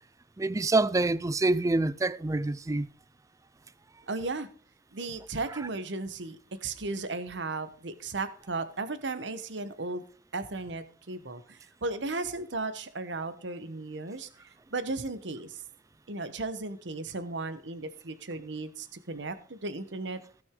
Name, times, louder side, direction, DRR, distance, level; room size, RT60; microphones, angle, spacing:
voice 1, 0.4-2.9, right 2 dB, 15° right, 0.4 m, -26 dB
voice 2, 4.1-4.5 4.9-10.0 10.3-15.6 16.1-20.2, right 3 dB, 70° right, 1.1 m, -35 dB
16.0 x 6.2 x 3.7 m
head